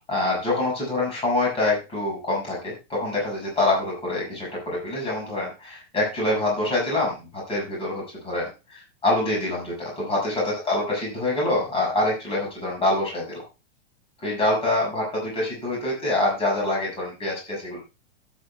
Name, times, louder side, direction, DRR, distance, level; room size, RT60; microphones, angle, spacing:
voice 1, 0.0-7.1 7.5-13.4 14.2-17.8, left 2 dB, 15° left, -4 dB, 6.4 m, -25 dB
16.0 x 9.2 x 2.3 m, 0.29 s
supercardioid pair, 155°, 35 cm